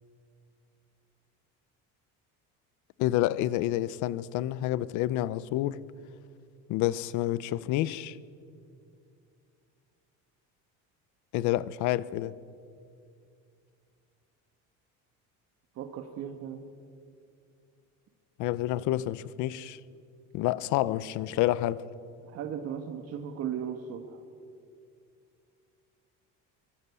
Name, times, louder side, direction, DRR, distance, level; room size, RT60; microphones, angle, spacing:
voice 1, 3.0-5.8 6.7-8.2 11.3-12.4 18.4-19.8 20.3-21.8, left 14 dB, 65° left, 0.8 m, -28 dB
voice 2, 15.7-16.6 22.2-24.2, right 8 dB, 50° right, 1.5 m, -37 dB
23.5 x 18.0 x 8.4 m
cardioid pair, 165°, 32 cm